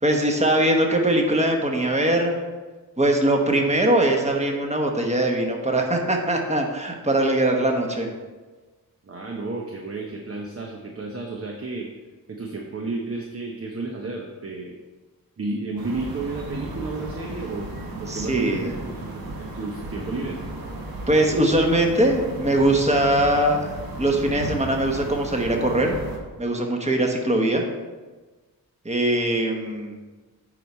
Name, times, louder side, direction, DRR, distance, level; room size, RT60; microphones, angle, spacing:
voice 1, 0.0-2.4 3.0-8.1 18.1-18.7 21.1-23.7 24.0-26.0 26.4-27.7 28.8-30.0, right 1 dB, 20° right, 2 dB, 1.2 m, -21 dB
voice 2, 9.0-11.9 12.3-14.8 15.4-17.7 18.0-19.2 19.5-20.4, right 3 dB, 40° right, 1 dB, 0.9 m, -32 dB
sound 1, 15.8-26.2, right 2 dB, 80° right, 1.3 m, -35 dB
9.0 x 4.7 x 4.3 m, 1.3 s
wide cardioid pair, 85°, 36 cm